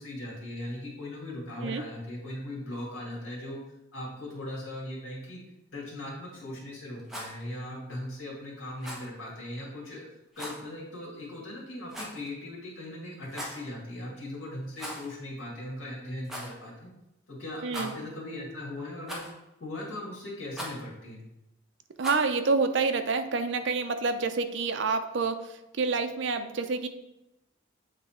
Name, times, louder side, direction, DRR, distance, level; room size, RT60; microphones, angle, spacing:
voice 1, 0.0-3.6 3.9-5.4 5.7-10.1 10.4-16.9 17.3-19.2 19.6-21.2, left 1 dB, 90° left, -3 dB, 1.9 m, -39 dB
Rattle, 7.0-7.4 8.8-9.1 10.3-10.6 11.9-12.3 13.2-13.6 14.7-15.2 15.4-15.5 16.2-16.5 17.7-18.2 19.1-19.5 20.5-20.8 22.0-22.3, equal, ahead, 1.0 m, -39 dB
voice 2, 17.6-17.9 22.0-26.9, right 4 dB, 65° right, 8 dB, 0.5 m, -28 dB
7.5 x 3.3 x 4.3 m, 0.92 s
head